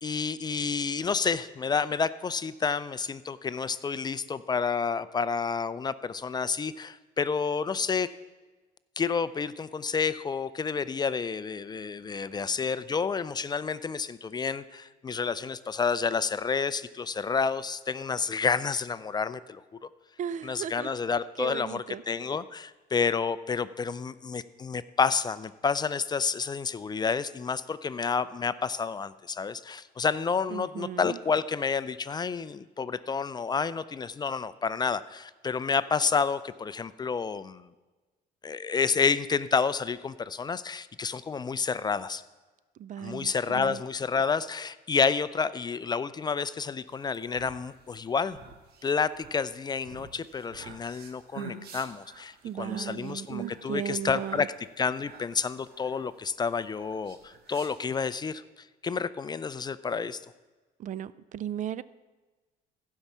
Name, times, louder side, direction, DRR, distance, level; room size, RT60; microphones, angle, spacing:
voice 1, 0.0-8.1 9.0-19.6 20.4-37.7 38.4-42.2 43.0-48.4 48.8-58.4 58.8-60.2, left 5 dB, 25° left, 15 dB, 0.4 m, -29 dB
voice 2, 20.2-20.9 21.4-22.0 30.5-31.2 42.8-43.8 52.4-54.5 60.8-61.8, right 10 dB, 50° right, 18 dB, 0.4 m, -36 dB
sound 1, 47.0-58.2, right 7 dB, 65° right, 1.5 m, -46 dB
15.0 x 5.6 x 7.2 m, 1.2 s
cardioid pair, 110°, 17 cm